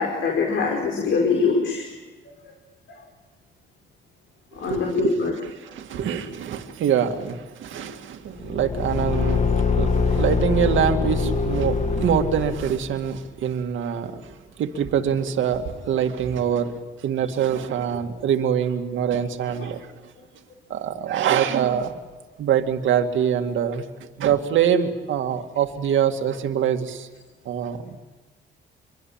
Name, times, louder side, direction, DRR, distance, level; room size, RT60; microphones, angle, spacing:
voice 1, 0.0-1.9 4.5-5.3, left 4 dB, 70° left, 1 dB, 5.1 m, -23 dB
voice 2, 4.6-14.3 14.6-16.7 17.0-19.9 20.7-22.0 22.4-23.8 24.2-27.1 27.5-28.0, right 8 dB, 75° right, 5 dB, 2.2 m, -24 dB
Car / Engine, 8.4-12.9, left 4 dB, 35° left, 1.6 m, -23 dB
26.5 x 23.5 x 8.8 m, 1.2 s
cardioid pair, 90°, 20 cm